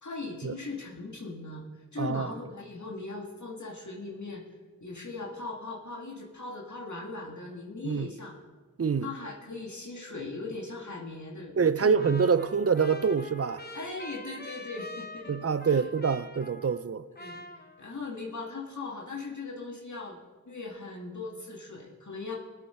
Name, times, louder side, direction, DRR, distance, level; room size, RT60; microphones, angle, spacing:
voice 1, 0.0-1.6 1.9-4.4 4.8-8.4 9.0-11.9 13.7-15.8 17.2-20.2 20.5-22.4, left 3 dB, 55° left, 2.0 m, -39 dB
voice 2, 2.0-2.3 7.8-8.1 8.8-9.1 11.6-13.6 15.3-17.0, right 6 dB, 45° right, 0.6 m, -26 dB
Trumpet, 12.0-16.9 17.2-18.2, left 1 dB, 30° left, 1.1 m, -45 dB
19.5 x 8.7 x 4.4 m
wide cardioid pair, 45°, 34 cm